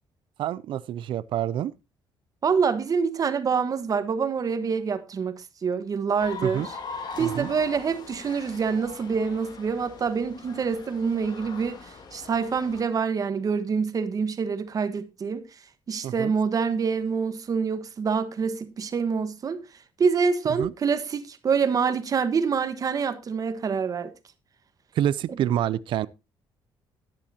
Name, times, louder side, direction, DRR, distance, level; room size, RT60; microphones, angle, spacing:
voice 1, 0.4-1.7 6.4-6.7 7.2-7.5 16.0-16.3 20.6-20.7 24.9-26.1, right 11 dB, 70° right, 0.5 m, -27 dB
voice 2, 2.4-6.8 7.2-15.4 15.9-19.6 20.0-24.1, right 5 dB, 45° right, 1.3 m, -26 dB
sound 1, 6.2-12.8, left 5 dB, 50° left, 2.3 m, -41 dB
13.5 x 10.5 x 2.8 m
cardioid pair, 100°, 9 cm